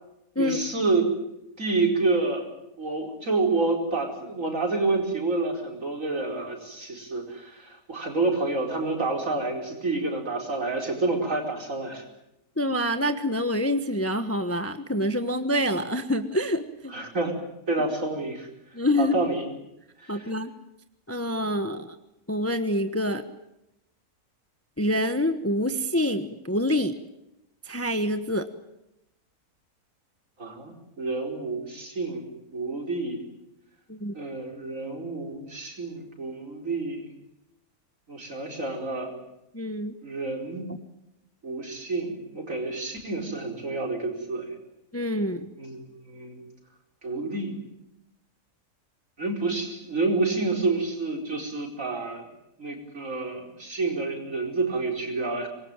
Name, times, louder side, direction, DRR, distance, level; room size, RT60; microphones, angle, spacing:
voice 1, 0.4-1.1 1.6-2.5 2.8-12.0 16.9-17.4 17.7-19.4 20.0-20.3 30.4-33.2 34.1-37.1 38.1-39.1 40.0-40.7 41.4-44.6 45.6-46.4 47.0-47.5 49.2-52.3 52.6-55.5, right 3 dB, 55° right, 2 dB, 5.3 m, -29 dB
voice 2, 12.6-17.0 18.7-19.2 20.1-20.5 21.1-22.0 22.3-23.2 24.8-26.9 27.6-28.5 33.9-34.1 39.5-40.0 44.9-45.5, equal, 10° left, 9 dB, 1.1 m, -26 dB
25.0 x 22.0 x 8.9 m, 0.85 s
omnidirectional pair, 1.6 m